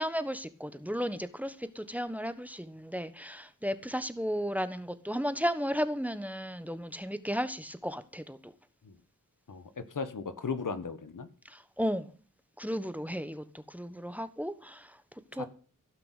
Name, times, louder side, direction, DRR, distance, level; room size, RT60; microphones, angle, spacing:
voice 1, 0.0-8.4 11.5-12.1 12.6-14.9 15.3-15.5, equal, 5° right, 1.2 m, -34 dB
voice 2, 9.5-11.3 15.3-15.5, left 5 dB, 70° left, 1.4 m, -37 dB
16.0 x 5.9 x 8.2 m
wide cardioid pair, 65°, 32 cm